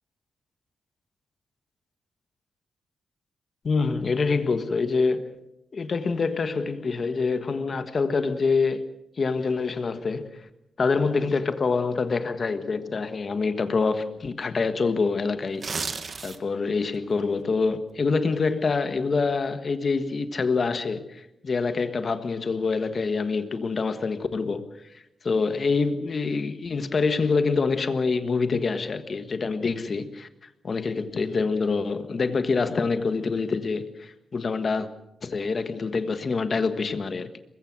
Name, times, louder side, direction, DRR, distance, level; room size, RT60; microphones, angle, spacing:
voice 1, 3.6-5.3 5.7-8.9 9.2-10.5 10.8-15.7 16.2-24.7 25.2-30.3 30.6-34.9 35.2-37.4, left 4 dB, 35° left, 1.5 m, -26 dB
sound 1, 15.5-16.6 17.0-17.2, right 4 dB, 35° right, 1.3 m, -32 dB
23.5 x 21.5 x 6.2 m
wide cardioid pair, 165°, 0 cm